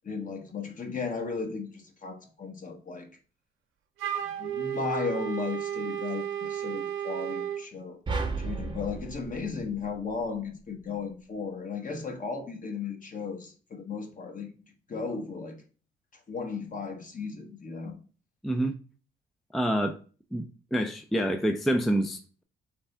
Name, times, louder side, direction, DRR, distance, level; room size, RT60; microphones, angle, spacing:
voice 1, 0.0-3.1 4.4-8.0 8.4-14.5 14.9-15.6 16.3-17.9, left 5 dB, 40° left, 1.1 m, -35 dB
Wind instrument woodwind instrument, 4.0-7.6, right 10 dB, 85° right, 0.6 m, -33 dB
sound 1, 8.1-10.5, right 4 dB, 25° right, 0.8 m, -34 dB
voice 2, 18.4-18.7 19.5-20.0 20.3-20.5 20.7-22.4, right 1 dB, ahead, 0.3 m, -27 dB
3.4 x 3.3 x 4.2 m
cardioid pair, 90°, 20 cm